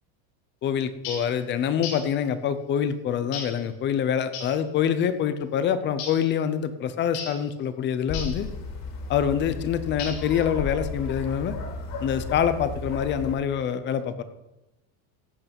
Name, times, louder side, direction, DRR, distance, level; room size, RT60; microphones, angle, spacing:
voice 1, 0.6-8.5 9.1-11.6 12.0-14.2, left 8 dB, 25° left, 12 dB, 0.6 m, -25 dB
sound 1, 1.0-1.3 1.8-2.1 3.3-3.6 4.3-4.6 6.0-6.3 7.1-7.4 8.1-8.4 10.0-10.4, left 5 dB, 85° left, 5.9 m, -36 dB
sound 2, 8.1-13.3, left 3 dB, 45° left, 3.4 m, -34 dB
14.5 x 8.6 x 5.3 m, 0.95 s
supercardioid pair, 165°, 49 cm